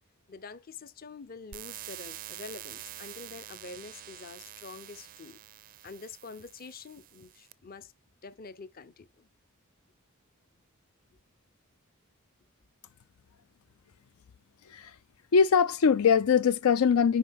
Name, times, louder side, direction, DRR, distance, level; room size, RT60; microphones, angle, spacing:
voice 1, 0.3-5.4 5.8-7.9 8.2-9.3, left 4 dB, 45° left, 0.7 m, -46 dB
sound 1, 1.5-7.5, right 13 dB, 40° right, 0.4 m, -46 dB
voice 2, 15.3-17.2, left 6 dB, 85° left, 0.4 m, -22 dB
10.0 x 4.2 x 3.6 m
head